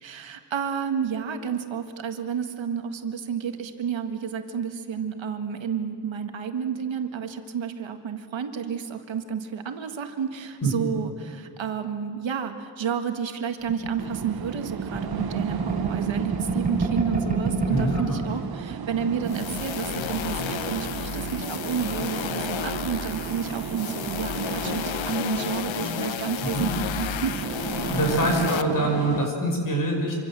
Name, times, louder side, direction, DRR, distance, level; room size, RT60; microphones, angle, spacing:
voice 1, 0.0-27.4, right 7 dB, 70° right, 6 dB, 1.8 m, -30 dB
sound 1, 13.7-18.2 18.6-18.7 18.9-19.5, right 3 dB, 20° right, 5.5 m, -28 dB
sound 2, 14.0-29.3, right 8 dB, 50° right, 0.8 m, -35 dB
voice 2, 17.7-18.2 26.5-26.7 27.8-30.2, right 1 dB, 45° left, 1 dB, 6.1 m, -24 dB
sound 3, 19.2-28.6, left 10 dB, 75° left, 0.8 m, -32 dB
26.5 x 25.0 x 7.6 m, 2.3 s
wide cardioid pair, 170°, 47 cm